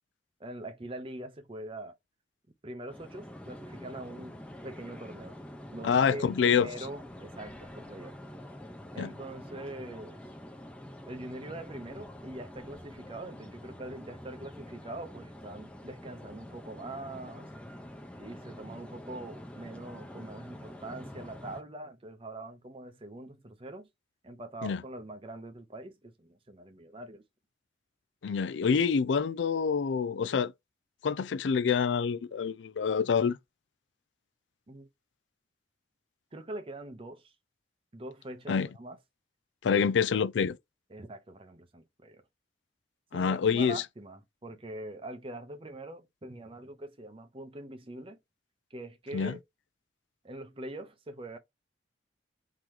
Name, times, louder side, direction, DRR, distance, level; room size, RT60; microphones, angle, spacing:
voice 1, 0.4-1.9 2.6-5.4 5.7-8.2 8.9-10.2 11.1-17.5 18.2-23.9 24.2-27.2 34.7-34.9 36.3-37.3 37.9-39.0 39.7-39.8 40.9-42.2 43.1-48.2 48.7-49.4 50.2-51.4, right 1 dB, 30° right, 0.7 m, -43 dB
sound 1, 2.9-21.6, equal, 5° left, 0.7 m, -46 dB
voice 2, 5.8-6.7 9.0-9.1 24.6-24.8 28.2-30.5 31.0-33.4 38.5-38.7 39.6-40.6 43.1-43.8 49.1-49.3, left 6 dB, 85° left, 0.4 m, -27 dB
3.8 x 2.9 x 4.7 m
head